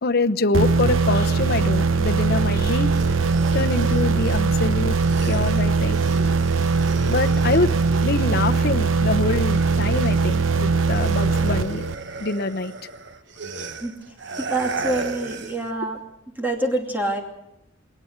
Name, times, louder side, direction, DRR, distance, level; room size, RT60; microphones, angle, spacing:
voice 1, 0.0-2.9 3.5-5.0 5.2-6.0 7.0-11.9 12.2-12.7, left 3 dB, 50° left, 0.9 m, -25 dB
sound 1, 0.5-9.9, equal, 25° right, 3.3 m, -41 dB
sound 2, 0.5-12.3, right 4 dB, 85° right, 0.8 m, -21 dB
sound 3, 2.7-8.9 9.2-15.7, right 3 dB, 60° right, 1.4 m, -36 dB
voice 2, 14.4-16.0 16.4-17.2, right 1 dB, 10° right, 2.6 m, -26 dB
21.5 x 19.0 x 8.0 m
head